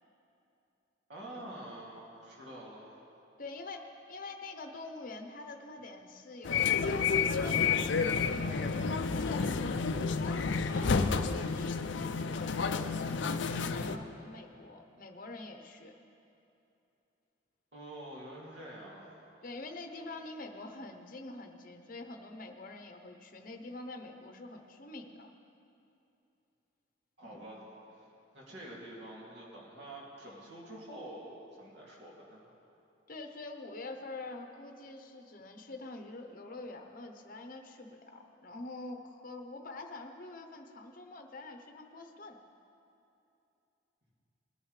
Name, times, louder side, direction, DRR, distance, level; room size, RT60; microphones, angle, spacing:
voice 1, 1.1-3.0 10.7-11.1 17.7-19.2 27.2-27.7 27.9-28.0 28.3-32.4, right 1 dB, 60° right, -5 dB, 2.6 m, -47 dB
voice 2, 3.4-3.8 4.1-7.9 8.3-9.8 10.2-15.9 19.4-25.3 27.2-27.5 33.1-42.4, left 2 dB, 45° left, 5 dB, 0.8 m, -46 dB
sound 1, 6.4-14.0, left 5 dB, 65° left, 0.5 m, -30 dB
20.0 x 10.5 x 3.3 m, 2.8 s
head